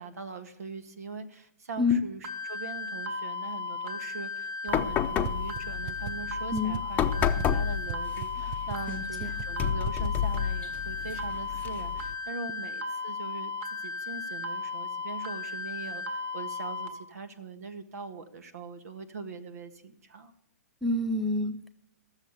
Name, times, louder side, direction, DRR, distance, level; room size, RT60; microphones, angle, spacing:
voice 1, 0.0-20.3, right 4 dB, 70° right, 9 dB, 1.6 m, -42 dB
sound 1, 2.2-16.9, left 4 dB, 50° right, 2.1 m, -36 dB
sound 2, 4.7-12.1, left 9 dB, 20° left, 0.8 m, -31 dB
sound 3, 5.2-5.3 5.6-5.7 5.9-6.1 6.5-6.8 7.2-7.4 7.9-8.0 8.2-8.3 8.5-8.8 9.2-9.4 9.8-10.1, right 15 dB, 30° right, 0.5 m, -36 dB
voice 2, 8.9-9.3 20.8-21.7, left 3 dB, ahead, 8 dB, 1.0 m, -28 dB
15.0 x 7.3 x 8.2 m, 0.69 s
figure-of-eight pair, 120°, 9 cm